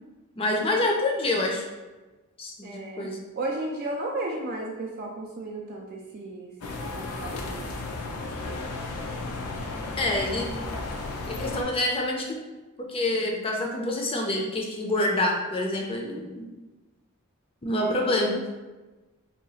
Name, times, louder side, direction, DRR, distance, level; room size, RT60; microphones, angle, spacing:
voice 1, 0.4-1.6 2.4-3.2 10.0-10.5 11.3-12.4 12.9-16.5 17.6-18.4, left 1 dB, 25° left, 1 dB, 0.4 m, -27 dB
voice 2, 2.6-7.7 17.7-18.5, right 2 dB, 45° right, -1 dB, 0.3 m, -35 dB
sound 1, 6.6-11.6, left 2 dB, 85° left, 0.5 m, -34 dB
2.8 x 2.3 x 4.0 m, 1.2 s
head